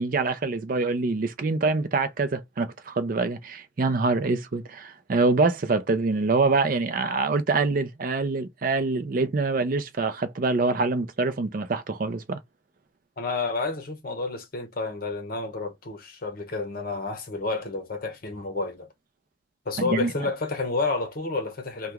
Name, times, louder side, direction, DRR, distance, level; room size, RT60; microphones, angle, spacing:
voice 1, 0.0-12.4 19.8-20.1, right 3 dB, 45° right, 0.4 m, -25 dB
voice 2, 13.2-18.9 19.7-21.9, left 3 dB, 50° left, 0.8 m, -30 dB
2.9 x 2.2 x 3.4 m
head